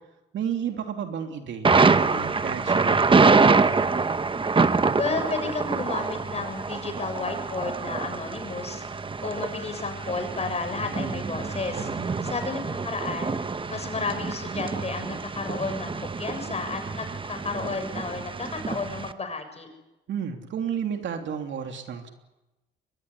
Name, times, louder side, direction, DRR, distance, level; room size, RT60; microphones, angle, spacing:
voice 1, 0.3-3.6 11.8-12.4 20.1-22.1, right 7 dB, 70° right, 4 dB, 3.2 m, -32 dB
Thunder, 1.6-19.1, right 4 dB, 25° right, 1.1 m, -25 dB
voice 2, 4.9-13.4 13.7-19.7, left 3 dB, 30° left, 7 dB, 7.1 m, -32 dB
23.0 x 20.0 x 9.9 m, 0.99 s
cardioid pair, 90°, 20 cm